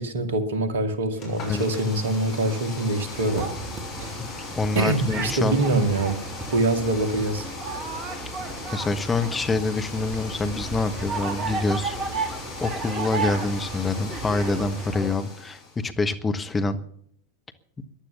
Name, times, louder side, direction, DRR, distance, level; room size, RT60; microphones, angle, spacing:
voice 1, 0.0-3.5 4.8-6.2 6.5-7.5, right 2 dB, 60° right, 10 dB, 2.1 m, -24 dB
sound 1, 1.1-15.8, left 3 dB, 40° left, 6.8 m, -38 dB
sound 2, 3.1-15.2, right 4 dB, 35° right, 2.3 m, -34 dB
voice 2, 4.5-5.6 8.7-12.0 12.6-16.8, left 3 dB, 15° left, 8 dB, 1.2 m, -26 dB
15.0 x 11.5 x 6.9 m, 0.65 s
figure-of-eight pair, 90°, 0 cm